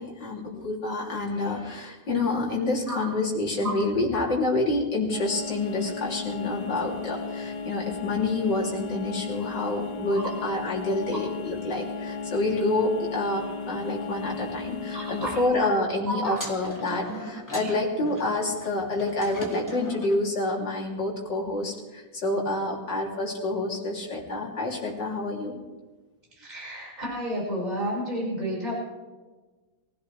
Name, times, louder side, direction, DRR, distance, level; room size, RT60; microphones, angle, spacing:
voice 1, 0.0-25.5, left 2 dB, 65° left, -3 dB, 3.8 m, -28 dB
sound 1, 5.1-15.5, left 5 dB, 85° left, 1.9 m, -35 dB
voice 2, 14.9-15.7 16.1-16.4 17.5-17.8 26.3-28.8, right 1 dB, 20° right, -5 dB, 5.6 m, -32 dB
sound 2, 16.3-20.2, equal, 10° left, 2.4 m, -39 dB
23.5 x 16.0 x 3.4 m, 1.3 s
omnidirectional pair, 2.1 m